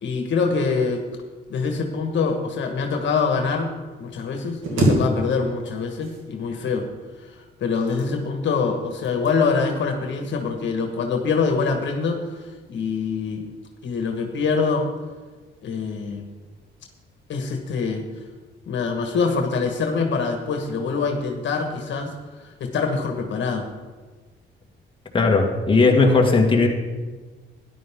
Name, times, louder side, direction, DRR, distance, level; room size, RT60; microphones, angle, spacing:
voice 1, 0.0-1.0 1.5-3.7 4.0-6.9 7.3-12.2 12.7-13.5 13.8-14.9 15.6-16.3 17.3-18.1 18.7-23.7, left 4 dB, 70° left, 3 dB, 1.6 m, -24 dB
sound 1, 4.6-5.7 6.0-6.7 7.6-8.4 9.0-9.4 9.8-10.1, right 1 dB, 85° right, 2.7 m, -25 dB
voice 2, 25.1-26.7, left 3 dB, 25° left, 0 dB, 2.0 m, -17 dB
13.5 x 11.0 x 3.7 m, 1.4 s
cardioid pair, 90°, 20 cm